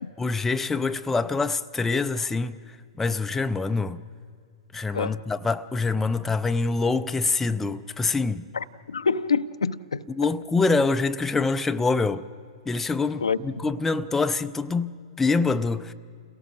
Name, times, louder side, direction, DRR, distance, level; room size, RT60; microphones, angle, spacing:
voice 1, 0.2-2.6 3.0-4.0 4.7-8.4 10.1-12.3 12.7-15.9, left 3 dB, 10° left, 0.4 m, -25 dB
voice 2, 8.5-10.0 13.2-13.4, left 5 dB, 75° left, 0.6 m, -26 dB
28.5 x 17.5 x 6.3 m
figure-of-eight pair, 110°, 3 cm